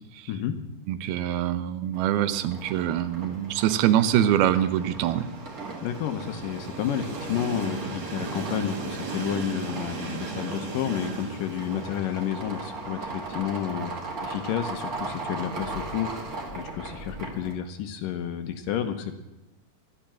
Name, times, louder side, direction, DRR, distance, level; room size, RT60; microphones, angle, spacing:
voice 1, 0.9-5.3, right 11 dB, 85° right, 13 dB, 2.7 m, -24 dB
sound 1, 1.9-17.5, right 3 dB, 30° right, 1.9 m, -39 dB
Train, 2.6-15.5, right 4 dB, 55° right, 1.1 m, -38 dB
voice 2, 5.8-13.9 14.2-19.2, left 10 dB, 75° left, 8 dB, 2.4 m, -31 dB
12.5 x 10.5 x 7.5 m, 0.98 s
omnidirectional pair, 4.4 m